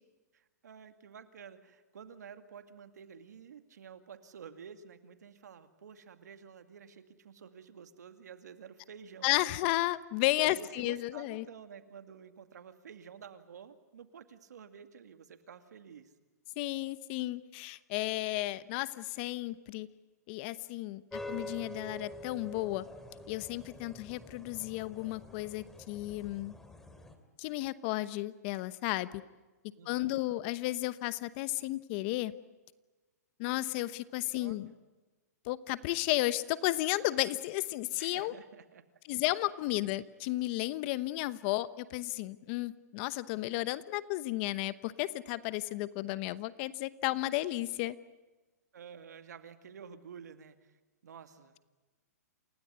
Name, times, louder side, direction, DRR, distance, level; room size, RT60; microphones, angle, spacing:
voice 1, 0.3-9.3 10.4-16.1 29.8-30.3 34.4-34.8 38.0-38.8 48.7-50.7 51.0-51.6, right 7 dB, 80° right, 8 dB, 2.3 m, -51 dB
voice 2, 9.2-11.4 16.6-19.9 20.3-22.8 23.3-26.5 27.4-29.1 29.9-32.3 33.4-34.7 35.4-38.3 39.1-47.9, left 17 dB, 40° left, 16 dB, 1.0 m, -33 dB
sound 1, 21.1-27.2, left 1 dB, 5° left, 2.6 m, -46 dB
28.5 x 17.0 x 9.8 m, 1.2 s
hypercardioid pair, 140°, 9 cm